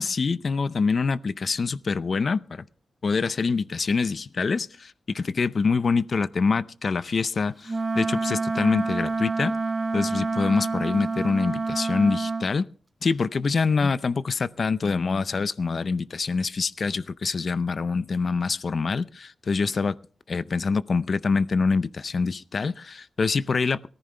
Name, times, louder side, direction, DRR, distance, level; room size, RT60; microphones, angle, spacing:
voice 1, 0.0-2.6 3.0-9.5 9.9-12.7 13.0-20.0 20.3-23.9, left 4 dB, 50° left, 0.5 m, -25 dB
Wind instrument woodwind instrument, 7.7-12.5, right 3 dB, 30° right, 0.8 m, -28 dB
18.5 x 14.0 x 3.3 m
wide cardioid pair, 135°, 0 cm